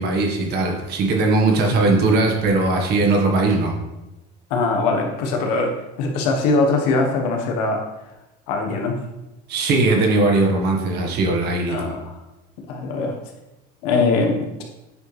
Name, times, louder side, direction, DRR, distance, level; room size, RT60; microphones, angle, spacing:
voice 1, 0.0-3.7 9.5-11.8, right 2 dB, 50° right, 1 dB, 1.7 m, -19 dB
voice 2, 4.5-5.7 6.0-7.8 8.5-9.0 11.7-12.1 12.7-13.1 13.8-14.6, left 3 dB, 80° left, 2 dB, 1.6 m, -21 dB
8.9 x 5.4 x 3.5 m, 0.97 s
cardioid pair, 135°, 21 cm